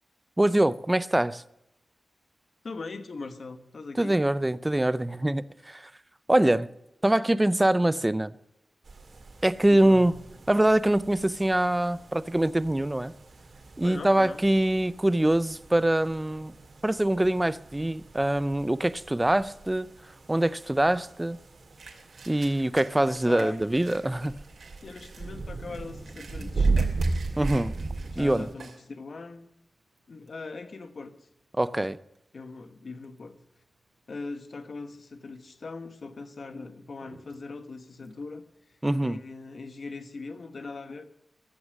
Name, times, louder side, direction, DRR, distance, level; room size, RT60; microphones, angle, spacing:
voice 1, 0.4-1.4 4.0-5.9 6.3-6.7 7.0-8.3 9.4-10.1 10.5-13.1 13.8-16.5 16.8-19.9 20.3-21.4 22.3-24.3 27.4-27.7 28.2-28.5 31.6-32.0 38.8-39.2, right 1 dB, 10° right, 0.5 m, -24 dB
voice 2, 2.6-4.2 9.7-10.1 13.8-14.4 23.1-23.6 24.8-27.0 28.1-29.5 30.1-31.1 32.3-33.3 34.1-38.4 39.0-41.0, left 3 dB, 50° left, 1.3 m, -40 dB
sound 1, 8.8-28.5, right 3 dB, 50° right, 2.3 m, -36 dB
sound 2, 21.8-28.9 29.4-29.5 30.0-30.4 31.1-31.3 31.6-32.7 33.0-33.6 34.0-34.1 34.9-35.5 35.9-39.0, right 4 dB, 70° right, 2.6 m, -50 dB
14.5 x 11.5 x 6.4 m
wide cardioid pair, 160°, 0 cm